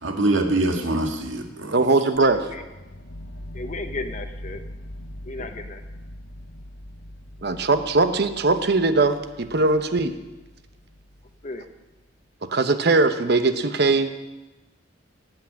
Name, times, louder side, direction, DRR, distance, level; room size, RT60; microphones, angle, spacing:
voice 1, 0.0-2.1, right 2 dB, 85° right, 3 dB, 1.8 m, -24 dB
voice 2, 1.7-2.5 7.4-10.1 12.5-14.1, right 3 dB, 60° right, 9 dB, 0.9 m, -20 dB
sound 1, 2.1-12.0, left 1 dB, 70° left, 1.2 m, -41 dB
voice 3, 3.5-4.6 5.2-5.8 11.4-11.6, left 2 dB, 40° left, 7 dB, 1.0 m, -34 dB
17.0 x 6.0 x 8.7 m, 1.1 s
head